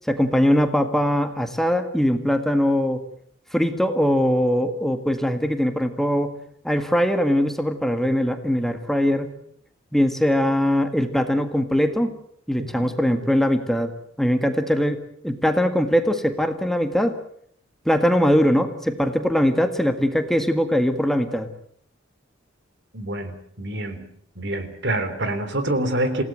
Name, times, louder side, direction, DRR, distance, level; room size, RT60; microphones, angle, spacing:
voice 1, 0.1-3.0 3.5-6.4 6.6-9.3 9.9-12.1 12.5-13.9 14.2-17.1 17.9-21.5, equal, ahead, 7 dB, 1.8 m, -21 dB
voice 2, 22.9-24.1 24.4-26.2, right 1 dB, 65° right, 10 dB, 3.5 m, -26 dB
28.5 x 17.5 x 7.7 m, 0.65 s
head